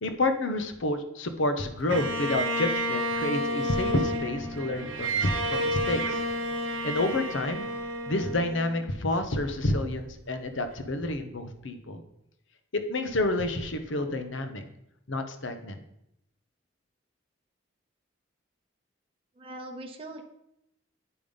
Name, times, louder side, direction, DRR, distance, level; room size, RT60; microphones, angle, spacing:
voice 1, 0.0-6.2 6.8-7.7 8.1-12.0 12.7-14.6 15.1-15.8, left 2 dB, 70° left, 8 dB, 0.9 m, -29 dB
Bowed string instrument, 1.9-9.2, equal, 75° right, 1.1 m, -30 dB
voice 2, 19.4-20.2, right 1 dB, 30° right, 1 dB, 0.9 m, -41 dB
9.0 x 5.2 x 5.3 m, 0.79 s
head